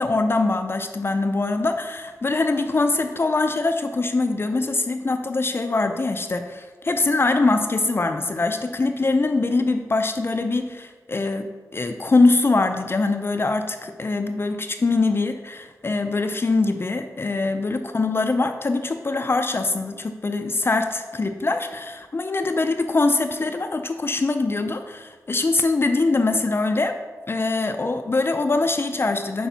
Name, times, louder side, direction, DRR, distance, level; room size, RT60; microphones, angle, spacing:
voice 1, 0.0-11.5 11.7-27.0 27.3-29.5, left 3 dB, 40° left, 7 dB, 0.4 m, -23 dB
6.0 x 4.6 x 4.0 m, 1.4 s
wide cardioid pair, 85°, 6 cm